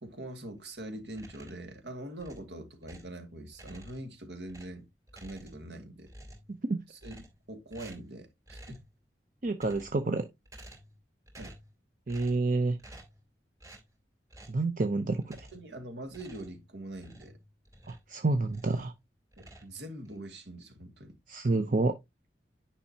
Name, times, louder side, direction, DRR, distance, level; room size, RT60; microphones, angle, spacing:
voice 1, 0.0-4.9 5.1-6.1 6.9-7.1 7.5-8.8 11.4-11.5 15.5-17.4 19.4-21.2, right 1 dB, 80° right, 2.2 m, -43 dB
sound 1, 1.1-1.7 2.2-3.2 3.5-4.2 4.5-5.8 6.0-6.6 7.0-7.4 7.7-8.1 8.5-8.9 9.4-10.1 10.4-11.0 11.3-11.7 12.1-12.5 12.8-13.2 13.6-13.9 14.3-14.6 15.2-15.7 16.1-18.1 18.4-19.0 19.3-20.2, right 1 dB, 20° right, 2.9 m, -51 dB
voice 2, 9.4-10.3 12.1-12.8 14.5-15.5 17.9-18.9 21.3-21.9, right 2 dB, 45° right, 0.7 m, -28 dB
10.0 x 5.6 x 2.8 m
head